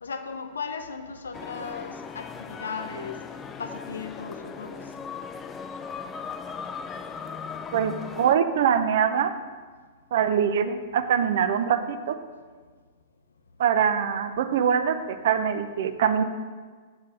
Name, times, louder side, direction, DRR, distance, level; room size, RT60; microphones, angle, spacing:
voice 1, 0.0-3.2 3.6-4.8, left 5 dB, 75° left, 7 dB, 0.7 m, -36 dB
sound 1, 1.3-8.4, left 6 dB, 20° left, 0.4 m, -38 dB
voice 2, 7.7-9.3 10.1-12.2 13.6-16.2, right 8 dB, 60° right, 10 dB, 0.6 m, -23 dB
6.7 x 4.6 x 6.0 m, 1.5 s
figure-of-eight pair, 105°, 0 cm